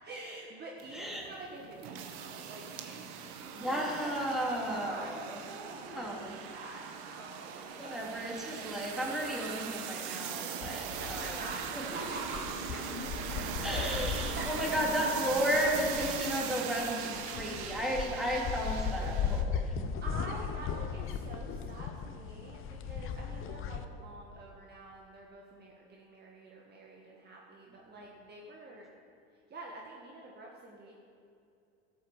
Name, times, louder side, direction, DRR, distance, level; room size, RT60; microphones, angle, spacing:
voice 1, 0.0-4.2 4.6-8.2 10.7-13.0 14.3-14.8 20.0-28.9 29.5-31.0, right 2 dB, 30° right, -2 dB, 1.8 m, -46 dB
sound 1, 0.8-19.4, right 7 dB, 60° right, 1.5 m, -40 dB
voice 2, 0.9-1.2 3.5-5.4 5.8-6.4 7.8-11.4 11.7-11.8 13.6-19.8, equal, ahead, -4 dB, 3.4 m, -33 dB
sound 2, 10.6-23.8, left 7 dB, 40° left, 0.9 m, -38 dB
12.5 x 8.7 x 7.3 m, 2.5 s
hypercardioid pair, 100°, 32 cm